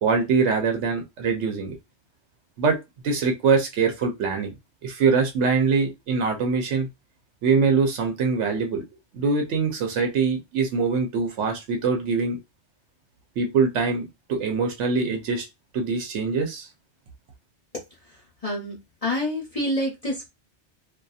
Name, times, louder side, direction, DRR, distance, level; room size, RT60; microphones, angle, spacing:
voice 1, 0.0-1.7 2.6-2.8 3.0-4.5 4.8-6.9 7.4-8.8 9.1-12.4 13.4-15.5 15.7-16.7, right 5 dB, 85° right, 1.0 m, -23 dB
voice 2, 18.4-20.3, left 1 dB, 35° left, 0.8 m, -27 dB
2.6 x 2.4 x 2.3 m
omnidirectional pair, 1.2 m